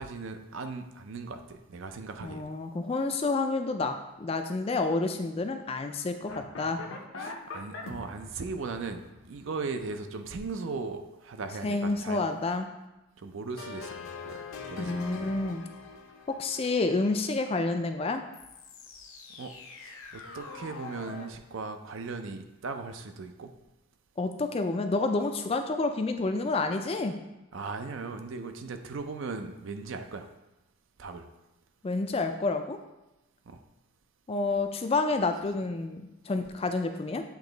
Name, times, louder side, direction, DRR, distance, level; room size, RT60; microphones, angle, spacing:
voice 1, 0.0-2.4 7.2-12.2 13.2-14.4 14.7-15.3 19.4-19.5 19.8-23.5 27.5-30.3 31.0-31.3 33.5-33.6, right 4 dB, 60° right, 7 dB, 0.5 m, -38 dB
voice 2, 2.2-6.8 11.6-12.7 14.8-15.6 16.4-18.2 24.2-27.2 31.8-32.8 34.3-37.2, left 3 dB, 25° left, 7 dB, 0.3 m, -29 dB
sound 1, 6.3-10.4 13.6-17.3 18.3-21.3, left 4 dB, 65° left, 0.7 m, -44 dB
8.2 x 3.0 x 3.9 m, 1.0 s
head